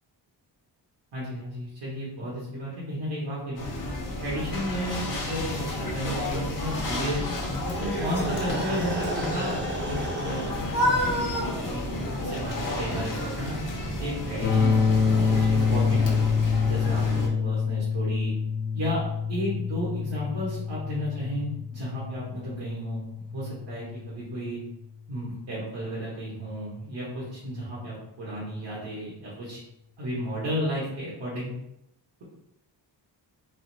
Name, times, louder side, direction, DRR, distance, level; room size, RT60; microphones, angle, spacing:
voice 1, 1.1-3.7 4.2-7.2 7.6-11.8 12.2-13.6 14.0-14.9 15.3-16.4 16.6-18.3 18.7-19.0 19.3-23.0 23.3-24.6 25.1-29.6 30.0-31.5, equal, 70° right, -8 dB, 1.5 m, -33 dB
sound 1, 3.6-17.3, left 1 dB, 45° left, 0.9 m, -31 dB
sound 2, 6.4-10.5, right 1 dB, 25° right, 0.8 m, -34 dB
sound 3, 14.4-24.3, left 5 dB, 30° left, 0.5 m, -26 dB
4.1 x 2.6 x 4.0 m, 0.80 s
wide cardioid pair, 165°, 43 cm